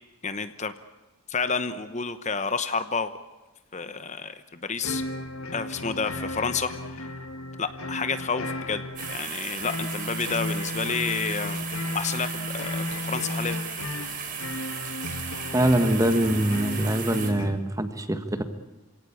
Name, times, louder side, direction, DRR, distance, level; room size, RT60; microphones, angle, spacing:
voice 1, 0.2-0.7 1.3-3.1 3.7-5.0 5.5-7.1 7.6-8.8 9.1-11.6 11.9-13.6, left 5 dB, 35° left, 11 dB, 1.0 m, -30 dB
sound 1, 4.8-17.5, left 2 dB, 80° left, 2.1 m, -34 dB
sound 2, 9.0-17.3, right 6 dB, 40° right, 4.5 m, -36 dB
voice 2, 15.5-18.4, right 1 dB, 15° right, 10 dB, 1.5 m, -23 dB
27.5 x 17.5 x 8.7 m, 1.2 s
head